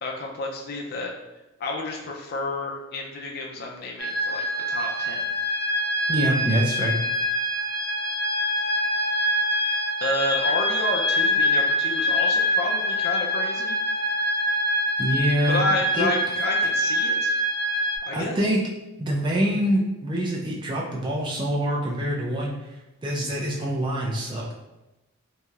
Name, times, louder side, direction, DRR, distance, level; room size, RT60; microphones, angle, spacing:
voice 1, 0.0-1.1 1.6-5.2 9.6-13.8 15.5-17.3 18.1-18.5, left 2 dB, 45° left, -1 dB, 0.4 m, -30 dB
sound 1, 4.0-18.0, left 1 dB, 65° right, 0.7 m, -25 dB
voice 2, 6.1-6.9 15.0-15.6 15.9-16.1 18.1-18.6 19.0-22.5 23.0-24.5, equal, 20° right, -2 dB, 0.4 m, -25 dB
3.0 x 2.6 x 2.3 m, 1.0 s
head